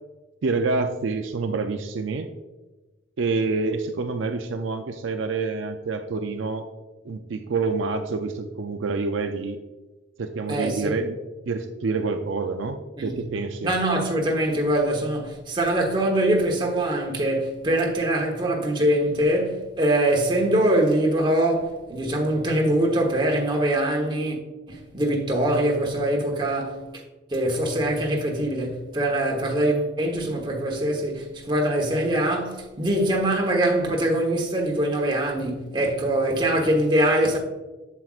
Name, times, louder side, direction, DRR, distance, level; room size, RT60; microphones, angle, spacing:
voice 1, 0.4-2.3 3.2-6.7 7.0-9.6 10.2-11.2 11.5-13.7, right 4 dB, 65° right, 0.4 m, -27 dB
voice 2, 10.5-11.0 13.0-13.2 13.6-24.4 24.7-26.8 27.3-37.4, right 1 dB, 20° right, 1.1 m, -23 dB
7.6 x 7.3 x 2.4 m
head